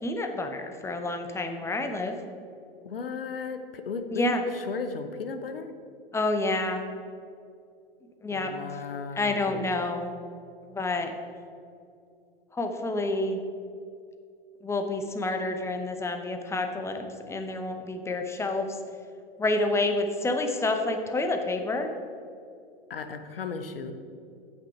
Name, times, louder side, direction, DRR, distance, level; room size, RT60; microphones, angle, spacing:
voice 1, 0.0-2.1 4.1-4.4 6.1-6.8 8.2-8.5 9.1-10.1 10.7-11.1 12.5-13.4 14.6-18.8 19.4-21.9, left 2 dB, 10° left, 5 dB, 0.8 m, -28 dB
voice 2, 2.8-5.7 8.3-9.8 22.9-23.9, left 5 dB, 75° left, 8 dB, 0.9 m, -36 dB
8.3 x 6.2 x 5.7 m, 2.4 s
figure-of-eight pair, 95°, 29 cm